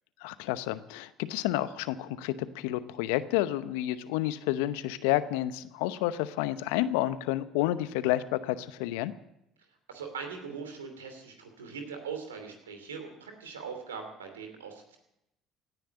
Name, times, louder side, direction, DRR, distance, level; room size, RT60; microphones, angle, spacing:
voice 1, 0.2-9.1, left 14 dB, 70° left, 14 dB, 0.8 m, -30 dB
voice 2, 9.9-15.0, right 6 dB, 85° right, 5 dB, 2.7 m, -41 dB
17.0 x 10.5 x 7.9 m, 0.84 s
hypercardioid pair, 60°, 0 cm